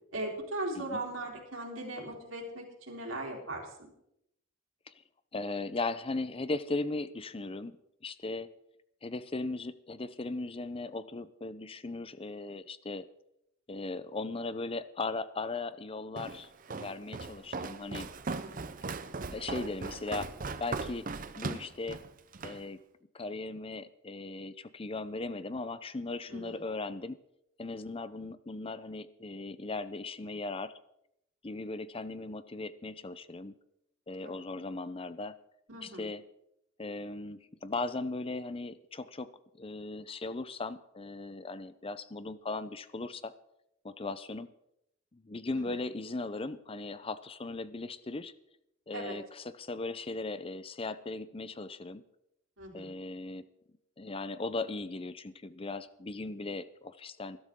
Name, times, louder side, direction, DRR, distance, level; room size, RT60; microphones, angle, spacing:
voice 1, 0.1-3.9 18.5-18.6 26.3-26.6 34.2-34.4 35.7-36.1 45.5-45.8 48.9-49.2 52.6-53.0, right 2 dB, 75° right, 0 dB, 3.7 m, -39 dB
voice 2, 5.3-8.5 9.0-13.1 13.7-18.1 19.3-20.3 20.6-21.1 21.4-22.0 22.4-22.8 23.1-27.2 27.6-30.7 31.4-33.5 34.1-35.3 35.8-36.2 36.8-43.3 43.8-44.5 45.1-48.3 48.9-52.0 52.7-53.4 54.0-57.4, left 3 dB, 25° left, 14 dB, 0.6 m, -38 dB
Walk footsteps, 16.2-22.6, right 4 dB, 40° right, 0.6 m, -39 dB
20.0 x 12.5 x 3.7 m, 0.80 s
head